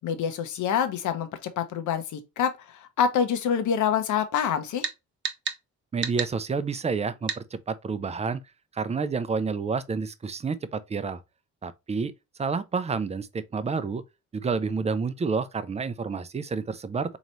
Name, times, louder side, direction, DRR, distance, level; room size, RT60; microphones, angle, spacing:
voice 1, 0.0-4.9, left 8 dB, 75° left, 0.8 m, -26 dB
sound 1, 4.8-5.0 5.2-5.6 6.0-6.3 7.3-7.4, right 6 dB, 40° right, 0.8 m, -30 dB
voice 2, 5.9-8.4 8.7-11.2 11.6-12.1 12.4-14.0 14.3-17.2, right 5 dB, 20° right, 0.5 m, -29 dB
3.9 x 3.0 x 3.0 m
cardioid pair, 90°, 30 cm